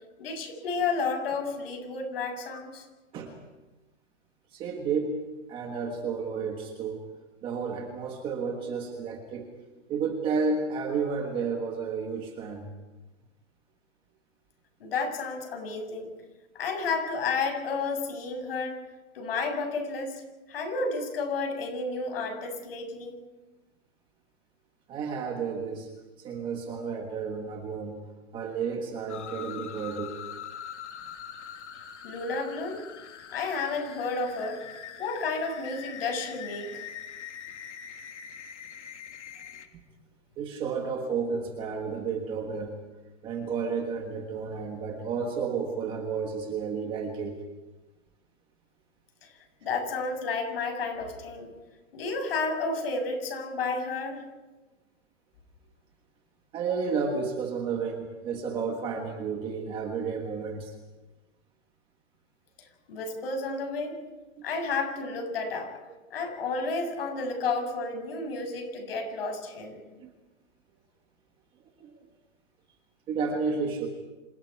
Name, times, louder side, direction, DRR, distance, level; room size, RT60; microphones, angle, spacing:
voice 1, 0.2-2.9 14.8-16.1 16.5-18.8 19.1-20.2 20.5-23.2 32.0-32.8 33.3-34.6 35.0-36.9 49.2-49.3 49.6-51.5 51.9-54.2 62.9-64.0 64.4-65.8 66.1-69.8, left 4 dB, 50° left, 4 dB, 7.4 m, -31 dB
voice 2, 4.5-5.2 5.5-7.0 7.4-9.5 9.9-12.7 24.9-25.9 26.2-28.0 28.3-30.2 40.4-42.8 43.2-47.4 56.5-60.7 70.0-70.1 71.8-71.9 73.1-73.9, right 5 dB, 15° right, 3 dB, 1.5 m, -31 dB
sound 1, 29.1-39.7, left 8 dB, 65° left, 3.2 m, -43 dB
29.5 x 26.5 x 4.7 m, 1.1 s
hypercardioid pair, 170°, 38 cm